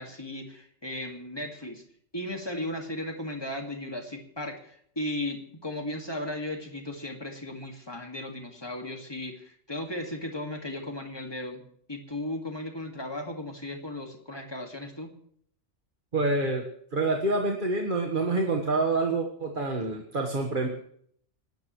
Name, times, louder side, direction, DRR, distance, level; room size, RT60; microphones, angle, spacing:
voice 1, 0.0-1.8 2.1-15.1, left 1 dB, 20° left, 3 dB, 2.1 m, -36 dB
voice 2, 16.1-16.6 16.9-20.7, right 2 dB, 45° right, 1 dB, 1.6 m, -27 dB
28.0 x 13.0 x 3.2 m, 0.65 s
omnidirectional pair, 1.2 m